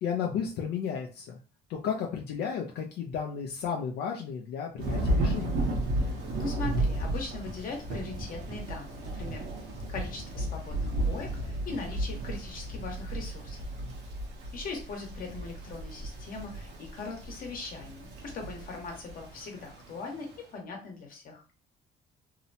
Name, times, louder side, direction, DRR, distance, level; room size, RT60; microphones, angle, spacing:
voice 1, 0.0-1.4 1.7-5.6, left 7 dB, 75° left, 1 dB, 0.5 m, -33 dB
Thunder / Rain, 4.8-20.4, right 1 dB, 80° right, 0.8 m, -34 dB
voice 2, 6.0-13.6 14.5-21.4, left 4 dB, 55° left, 2 dB, 1.0 m, -40 dB
2.8 x 2.0 x 2.7 m, 0.34 s
cardioid pair, 110°, 17 cm